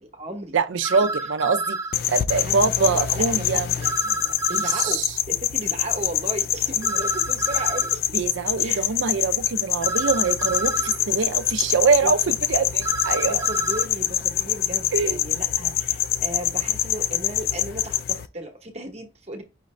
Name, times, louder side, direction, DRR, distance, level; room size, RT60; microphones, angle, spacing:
voice 1, 0.0-0.5 0.9-1.1 2.3-8.1 8.6-8.8 12.0-12.1 13.2-19.4, right 1 dB, 30° right, 0.9 m, -36 dB
voice 2, 0.5-1.8 2.1-3.7 4.5-5.2 6.8-7.0 8.1-13.4 14.9-15.2, right 5 dB, 70° right, 0.5 m, -24 dB
sound 1, 0.8-1.9 3.8-5.0 6.8-8.0 9.8-11.0 12.8-13.9, right 2 dB, 15° right, 0.4 m, -29 dB
sound 2, 1.9-18.3, left 11 dB, 50° left, 0.3 m, -25 dB
5.6 x 2.6 x 3.1 m
head